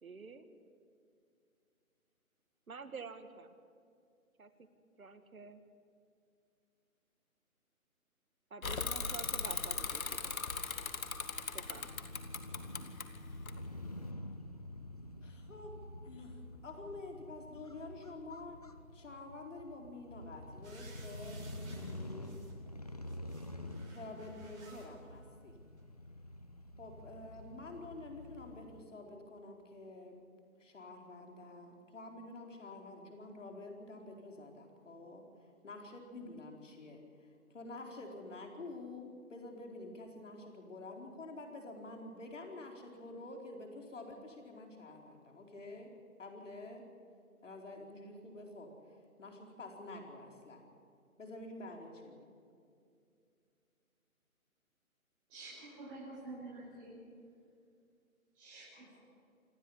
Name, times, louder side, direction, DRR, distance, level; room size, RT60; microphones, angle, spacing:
voice 1, 0.0-0.5 2.7-3.5 4.4-4.5 5.0-5.6 8.5-10.4 11.5-11.9, right 5 dB, 75° right, 9 dB, 2.1 m, -48 dB
Bicycle / Mechanisms, 8.6-14.1, left 4 dB, 70° left, 2.1 m, -39 dB
Crow / Motorcycle, 11.0-28.8, left 1 dB, 30° left, 0.6 m, -48 dB
voice 2, 15.2-15.7 16.0-18.6 18.9-22.4 23.9-25.5 26.8-30.3 30.6-35.2 35.6-45.9 46.2-46.8 47.4-50.6 51.2-52.2, left 2 dB, 55° left, 2 dB, 4.6 m, -48 dB
sound 1, 20.6-22.5 22.9-24.9 25.8-25.9, right 3 dB, 50° right, 7.7 m, -59 dB
voice 3, 55.3-57.0 58.3-59.0, right 2 dB, 10° right, -11 dB, 6.2 m, -49 dB
27.0 x 12.0 x 9.9 m, 2.4 s
hypercardioid pair, 170°, 43 cm